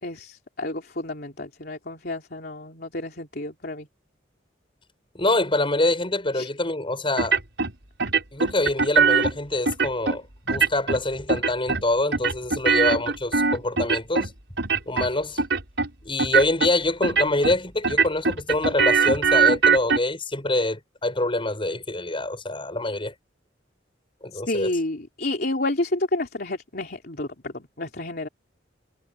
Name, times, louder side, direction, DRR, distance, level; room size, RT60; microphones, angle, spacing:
voice 1, 0.0-3.9 6.3-6.5 24.3-28.3, left 2 dB, 55° left, 3.4 m, -30 dB
voice 2, 5.1-7.4 8.3-14.3 14.9-15.4 16.0-23.1 24.2-24.7, left 2 dB, 30° left, 7.2 m, -25 dB
sound 1, 7.2-7.7 8.0-9.3 9.7-10.2 10.5-11.0 11.3-11.8 12.1-14.3 14.6-15.1 15.4-15.9 16.2-16.7 17.0-17.6 17.8-20.0, right 5 dB, 70° right, 6.7 m, -21 dB
head